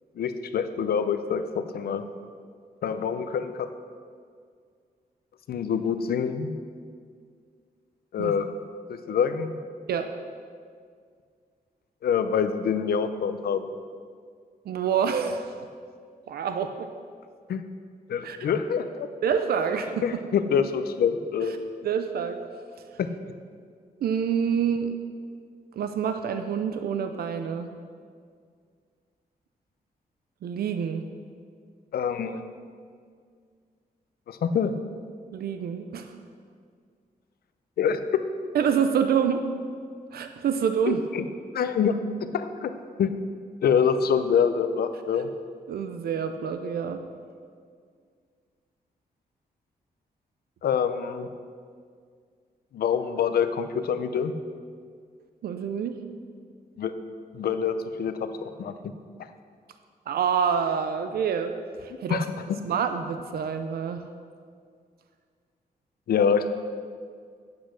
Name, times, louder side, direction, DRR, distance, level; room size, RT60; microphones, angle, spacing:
voice 1, 0.2-2.0 2.8-3.7 5.5-6.5 8.1-8.5 8.9-9.6 12.0-13.6 17.5-17.6 18.1-19.1 20.0-21.5 23.0-23.1 31.9-32.4 34.3-34.7 37.8-38.0 40.9-41.2 41.5-42.0 42.3-42.7 43.0-43.1 43.6-45.3 50.6-51.3 52.7-54.3 56.8-56.9 57.3-58.7 62.1-62.6 66.1-66.5, left 7 dB, 85° left, 10 dB, 0.7 m, -26 dB
voice 2, 14.7-15.5 16.3-16.9 18.2-18.4 19.2-20.2 21.8-22.4 24.0-25.0 25.8-27.7 30.4-31.1 35.3-36.1 38.5-39.4 40.1-41.0 45.7-47.0 55.4-56.0 60.1-62.2 62.6-64.0, right 7 dB, 85° right, 8 dB, 0.6 m, -27 dB
8.6 x 8.2 x 6.3 m, 2.1 s
wide cardioid pair, 175°, 16 cm